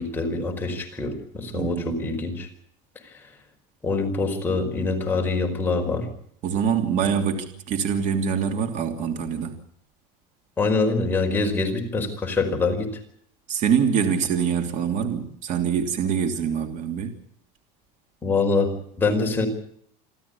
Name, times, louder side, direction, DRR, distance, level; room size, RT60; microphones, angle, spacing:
voice 1, 0.0-2.5 3.8-6.1 10.6-12.9 18.2-19.5, left 3 dB, 10° left, 1 dB, 4.8 m, -24 dB
voice 2, 1.5-2.0 6.4-9.5 13.5-17.1, right 7 dB, 45° right, 6 dB, 3.0 m, -24 dB
27.5 x 13.0 x 8.5 m, 0.66 s
cardioid pair, 160°, 18 cm